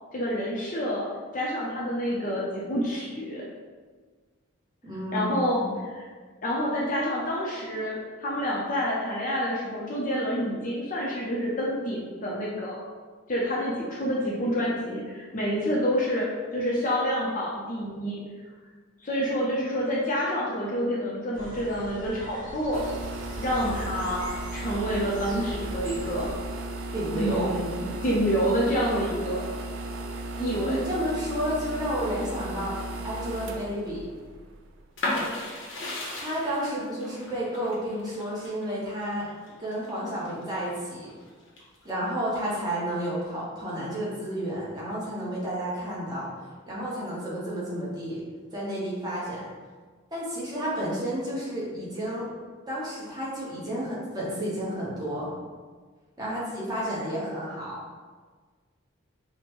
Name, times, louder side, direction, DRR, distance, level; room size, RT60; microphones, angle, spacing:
voice 1, 0.1-1.1 1.3-3.4 5.1-6.0 6.4-12.8 13.3-16.3 16.5-18.2 19.0-22.8 23.4-26.3 27.1-29.5 30.4-30.8, equal, 40° left, -5 dB, 0.5 m, -28 dB
voice 2, 4.8-5.7 26.9-27.5 30.4-32.8 33.0-34.1 36.2-39.3 39.6-41.1 41.8-46.3 46.7-48.2 48.5-49.4 50.1-52.3 52.7-55.3 56.2-57.8, equal, 20° right, -7 dB, 0.9 m, -31 dB
sound 1, 21.3-26.3, equal, 40° right, 1.1 m, -42 dB
sound 2, 22.7-35.1, right 2 dB, 65° right, 0.3 m, -36 dB
sound 3, 35.0-40.6 41.0-41.9, left 1 dB, 65° left, 0.8 m, -34 dB
5.0 x 2.1 x 3.0 m, 1.5 s
head